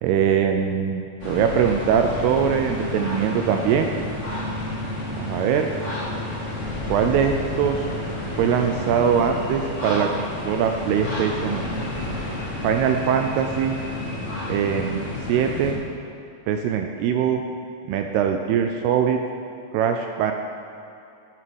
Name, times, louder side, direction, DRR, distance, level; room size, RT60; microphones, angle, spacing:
voice 1, 0.0-3.9 5.1-5.7 6.8-7.9 8.4-11.6 12.6-13.8 14.5-15.0 15.3-15.8 16.5-17.4 17.9-19.2 19.7-20.3, right 8 dB, 80° right, 4 dB, 2.4 m, -22 dB
sound 1, 1.2-15.7, left 1 dB, 20° left, 2.1 m, -30 dB
13.5 x 6.6 x 7.0 m, 2.5 s
omnidirectional pair, 5.1 m